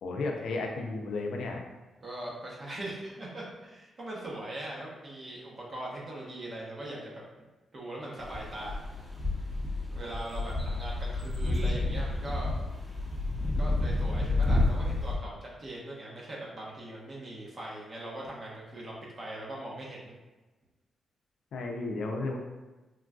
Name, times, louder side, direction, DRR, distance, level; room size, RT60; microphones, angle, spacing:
voice 1, 0.0-1.6 21.5-22.4, left 3 dB, 80° left, 2 dB, 0.4 m, -33 dB
voice 2, 2.0-7.2 7.7-8.8 9.9-12.5 13.4-20.1, right 1 dB, 50° right, -4 dB, 0.9 m, -41 dB
sound 1, 8.2-15.2, left 2 dB, ahead, 0.8 m, -30 dB
3.7 x 2.5 x 2.3 m, 1.1 s
cardioid pair, 70°, 0 cm